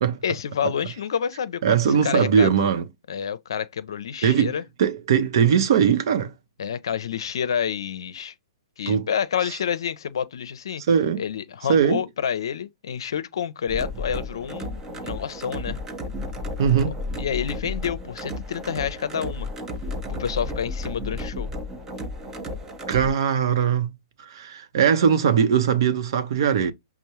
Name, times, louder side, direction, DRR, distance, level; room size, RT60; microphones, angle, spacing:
voice 1, 0.2-2.7 3.1-4.6 6.6-8.3 8.8-10.8 11.2-15.8 16.8-19.5 20.1-21.5, left 8 dB, 70° left, 0.5 m, -29 dB
voice 2, 1.6-2.9 4.2-6.3 8.9-9.1 10.9-11.2 11.7-12.0 16.6-17.0 22.9-26.7, right 7 dB, 60° right, 0.7 m, -20 dB
sound 1, 13.7-23.1, left 1 dB, 15° right, 0.7 m, -33 dB
5.3 x 2.0 x 2.9 m
hypercardioid pair, 125°, 3 cm